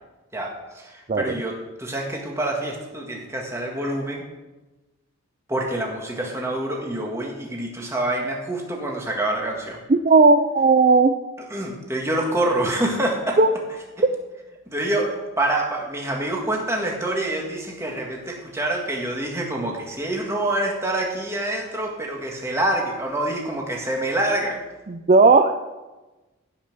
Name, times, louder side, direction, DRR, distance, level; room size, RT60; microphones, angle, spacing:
voice 1, 0.3-4.2 5.5-9.8 11.5-13.4 14.7-24.6, right 1 dB, 10° right, -1 dB, 1.9 m, -26 dB
voice 2, 9.9-11.1 13.4-13.5 24.9-25.6, right 3 dB, 35° right, 7 dB, 0.4 m, -15 dB
16.0 x 5.8 x 6.1 m, 1.1 s
head